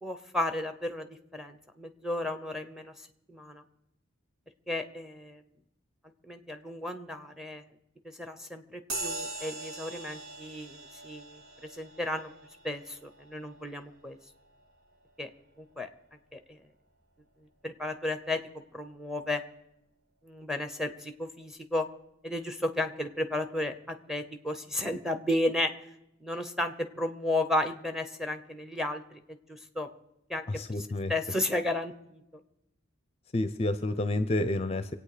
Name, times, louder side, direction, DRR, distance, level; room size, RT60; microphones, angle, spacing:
voice 1, 0.0-3.6 4.7-5.5 6.2-7.6 8.0-12.3 12.6-14.2 15.2-15.3 15.6-15.9 16.3-16.6 17.4-19.4 20.2-21.9 22.2-25.9 26.2-29.9 30.3-30.4 31.1-32.4, left 1 dB, ahead, 8 dB, 0.9 m, -33 dB
sound 1, 8.9-16.8, right 2 dB, 80° right, 3.2 m, -43 dB
voice 2, 30.5-31.1 33.3-34.9, left 1 dB, 30° left, 11 dB, 0.5 m, -29 dB
24.5 x 8.8 x 5.0 m, 0.87 s
head